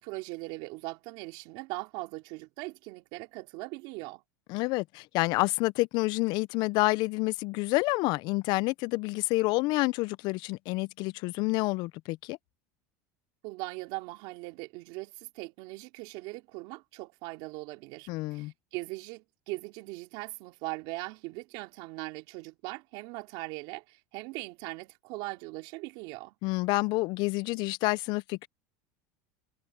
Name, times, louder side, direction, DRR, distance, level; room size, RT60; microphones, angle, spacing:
voice 1, 0.0-4.2 13.4-26.3, right 23 dB, 65° right, 3.1 m, -40 dB
voice 2, 4.5-12.4 18.1-18.5 26.4-28.5, left 23 dB, 55° left, 0.3 m, -28 dB
supercardioid pair, 135°, 9 cm